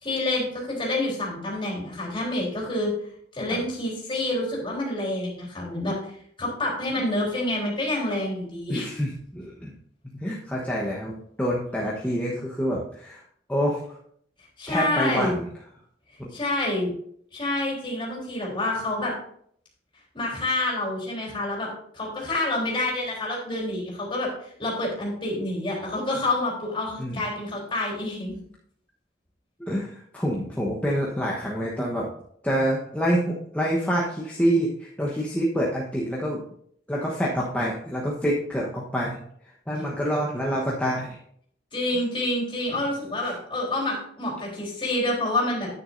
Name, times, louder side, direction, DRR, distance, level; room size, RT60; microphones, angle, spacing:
voice 1, 0.0-2.9 3.3-6.0 6.4-8.9 14.6-15.3 16.3-16.9 17.3-19.1 20.1-21.7 21.9-28.4 41.7-45.7, left 1 dB, 30° left, -4 dB, 3.7 m, -28 dB
voice 2, 8.7-9.7 10.2-13.2 13.5-13.8 14.7-15.5 16.2-16.3 27.0-27.2 29.6-32.1 32.4-36.4 36.9-39.2 39.7-41.2 43.2-43.4, equal, 10° left, -5 dB, 1.1 m, -27 dB
9.6 x 9.5 x 2.7 m, 0.65 s
head